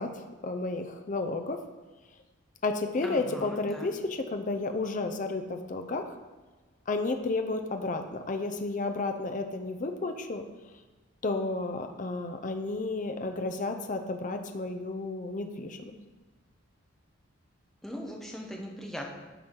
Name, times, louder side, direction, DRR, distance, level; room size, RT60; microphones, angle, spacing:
voice 1, 0.0-1.6 2.6-6.2 6.9-10.4 11.2-15.8, left 3 dB, 40° left, 6 dB, 0.5 m, -32 dB
voice 2, 3.0-3.6 17.8-19.1, equal, ahead, -1 dB, 0.8 m, -39 dB
10.5 x 4.4 x 3.7 m, 1.2 s
head